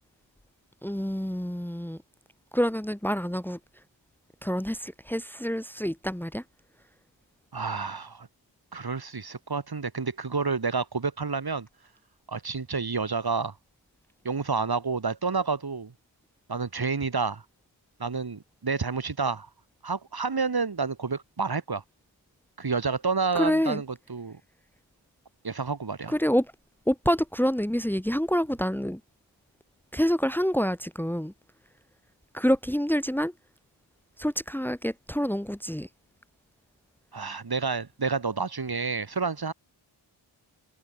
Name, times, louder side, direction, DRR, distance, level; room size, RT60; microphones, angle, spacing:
voice 1, 0.8-2.0 2.5-3.6 4.4-6.4 23.3-23.8 26.1-26.5 26.9-29.0 29.9-31.3 32.3-33.3 34.2-35.9, equal, 5° left, 2.4 m, -27 dB
voice 2, 7.5-8.3 8.7-11.7 12.3-13.5 14.2-15.9 16.5-17.4 18.0-19.5 19.8-21.8 22.6-24.4 25.4-26.1 37.1-39.5, right 4 dB, 50° right, 4.1 m, -29 dB
wide cardioid pair, 120°, 48 cm